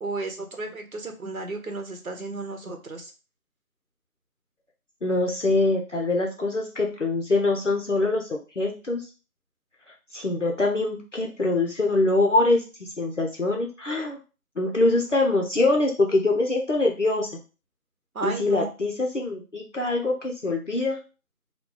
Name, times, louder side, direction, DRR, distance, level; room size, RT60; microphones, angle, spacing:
voice 1, 0.0-3.1 18.1-18.7, right 3 dB, 70° right, 5 dB, 0.9 m, -33 dB
voice 2, 5.0-9.1 10.1-14.2 14.6-17.3 18.2-21.0, left 2 dB, 55° left, 0 dB, 0.6 m, -24 dB
3.0 x 2.3 x 3.7 m, 0.33 s
figure-of-eight pair, 180°, 44 cm